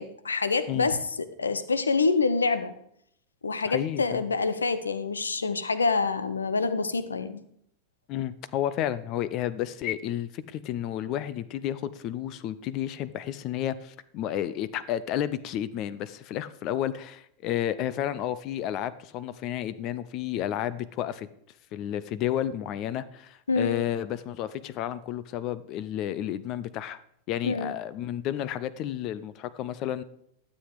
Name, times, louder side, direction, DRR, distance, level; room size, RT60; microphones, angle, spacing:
voice 1, 0.0-2.7 3.4-7.4 23.5-23.8 27.4-27.7, left 4 dB, 75° left, 13 dB, 0.9 m, -26 dB
voice 2, 3.7-4.2 8.1-21.3 21.7-27.0 27.3-30.0, left 11 dB, 40° left, 16 dB, 0.7 m, -31 dB
13.0 x 7.7 x 4.9 m, 0.71 s
figure-of-eight pair, 90°, 0 cm